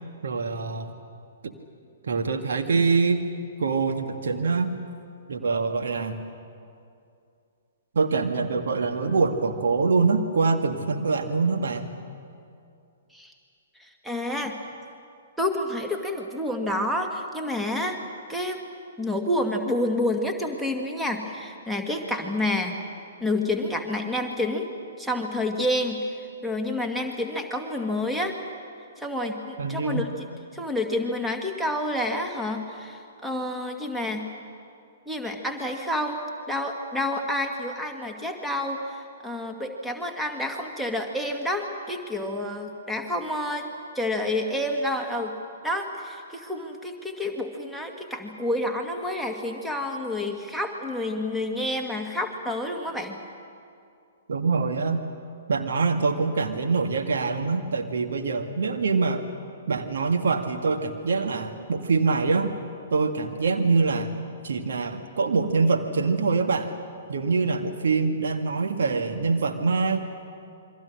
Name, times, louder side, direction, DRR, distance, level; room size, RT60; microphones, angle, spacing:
voice 1, 0.2-1.0 1.4-1.5 2.0-3.2 3.6-4.8 5.3-6.2 7.9-11.9 29.6-30.1 54.3-55.0 55.5-59.2 59.7-62.6 62.9-64.1 64.4-66.7 67.1-70.0, right 4 dB, 60° right, 5 dB, 1.9 m, -24 dB
voice 2, 13.8-14.6 15.4-18.0 18.3-18.6 19.0-22.8 23.2-24.7 25.0-26.0 26.4-28.4 29.0-30.3 30.5-34.3 35.1-45.4 45.6-53.2, left 1 dB, ahead, 3 dB, 2.0 m, -29 dB
28.0 x 23.5 x 6.6 m, 2.5 s
figure-of-eight pair, 115°, 0 cm